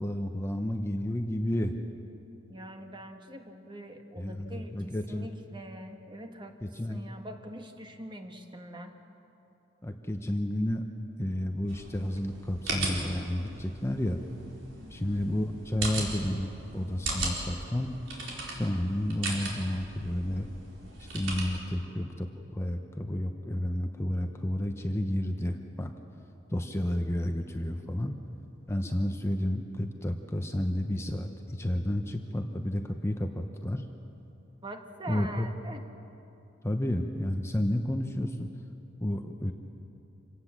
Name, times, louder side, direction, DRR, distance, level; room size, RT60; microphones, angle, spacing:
voice 1, 0.0-1.7 4.2-5.3 6.6-7.0 9.8-10.8 11.2-14.2 14.9-17.9 18.5-20.5 21.0-25.9 26.5-28.2 28.7-33.8 35.1-35.5 36.6-38.5 39.0-39.5, left 1 dB, 15° left, 5 dB, 0.9 m, -31 dB
voice 2, 2.5-8.9 14.8-15.4 34.6-35.8, right 1 dB, 25° right, 5 dB, 1.5 m, -44 dB
sound 1, 11.7-21.4, right 2 dB, 70° right, 4.5 m, -38 dB
26.5 x 18.0 x 7.5 m, 2.9 s
head